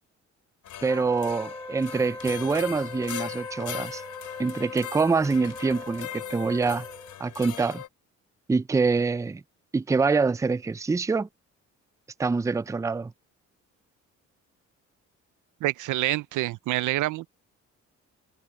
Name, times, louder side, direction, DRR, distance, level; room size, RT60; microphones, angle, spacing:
sound 1, 0.6-7.9, left 12 dB, 75° left, 3.9 m, -39 dB
Wind instrument woodwind instrument, 0.8-7.2, left 1 dB, 10° left, 1.2 m, -41 dB
voice 1, 0.8-4.0 4.4-6.9 7.2-7.8 8.5-9.4 9.7-11.3 12.2-13.1, right 4 dB, 10° right, 0.4 m, -25 dB
voice 2, 15.6-17.3, right 16 dB, 85° right, 0.7 m, -27 dB
cardioid pair, 90°, 30 cm